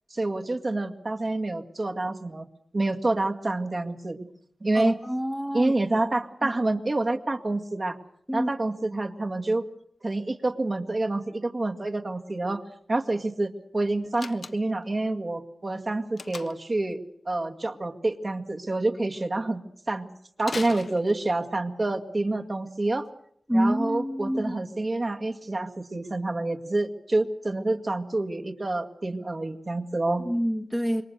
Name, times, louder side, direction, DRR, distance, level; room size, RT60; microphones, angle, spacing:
voice 1, 0.1-2.5 2.7-4.3 4.6-5.0 5.5-8.0 8.3-9.7 10.0-12.6 12.9-17.0 17.3-19.6 19.9-20.1 20.4-23.1 23.5-30.2, right 2 dB, 40° right, 3 dB, 2.0 m, -28 dB
voice 2, 4.7-6.0 8.3-8.5 23.5-24.6 30.2-31.0, equal, 5° right, 4 dB, 1.3 m, -27 dB
Slam, 14.1-14.9 16.2-16.7 20.4-21.5, left 4 dB, 70° left, 1.1 m, -39 dB
26.5 x 23.0 x 6.5 m, 0.67 s
wide cardioid pair, 75°, 0 cm